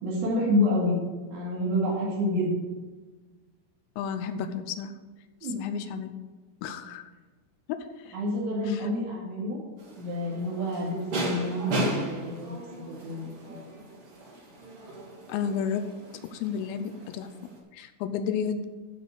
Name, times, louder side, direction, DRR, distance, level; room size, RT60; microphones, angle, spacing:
voice 1, 0.0-1.0 1.3-2.6 5.4-5.6 8.1-9.6 10.0-13.7, left 1 dB, 80° right, -5 dB, 4.9 m, -28 dB
voice 2, 4.0-4.9 5.6-6.1 6.6-7.0 7.7-8.2 8.7-8.9 15.3-15.8 16.3-17.3 17.7-18.7, left 7 dB, 85° left, 9 dB, 3.4 m, -32 dB
sound 1, 9.8-17.6, right 1 dB, 55° right, 1.6 m, -36 dB
13.0 x 5.4 x 6.5 m, 1.3 s
omnidirectional pair, 6.0 m